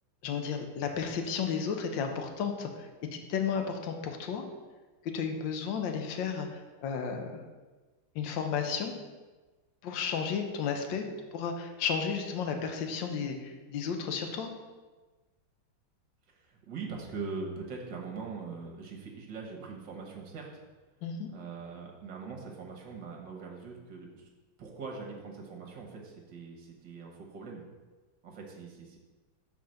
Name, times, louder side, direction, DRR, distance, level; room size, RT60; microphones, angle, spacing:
voice 1, 0.2-4.4 5.1-7.4 8.1-8.9 9.8-11.0 11.3-14.5 21.0-21.3, left 6 dB, 70° left, 5 dB, 1.4 m, -33 dB
voice 2, 16.3-20.6 21.3-24.3 24.6-27.6 28.2-29.0, right 4 dB, 60° right, -1 dB, 1.7 m, -42 dB
5.9 x 4.3 x 6.4 m, 1.3 s
omnidirectional pair, 2.3 m